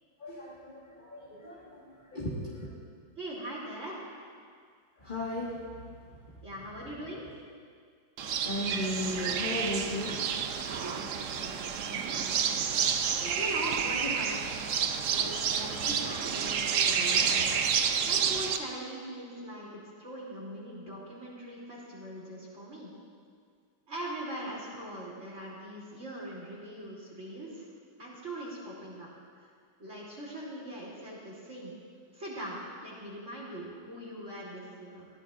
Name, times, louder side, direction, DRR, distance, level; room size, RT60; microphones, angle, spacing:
voice 1, 0.2-1.8 2.1-2.7 5.0-5.5 8.4-10.1 13.1-13.4 14.0-14.2, left 1 dB, 25° left, -6 dB, 1.7 m, -35 dB
voice 2, 3.2-4.0 6.4-7.2 10.7-12.7 13.4-14.4 15.1-17.5 18.1-22.9 23.9-27.6 28.0-29.1 29.8-31.7 32.1-35.1, right 1 dB, 35° right, -6 dB, 3.3 m, -41 dB
sound 1, 8.2-18.6, right 7 dB, 75° right, 0.7 m, -29 dB
20.0 x 15.0 x 2.5 m, 2.1 s
omnidirectional pair, 2.1 m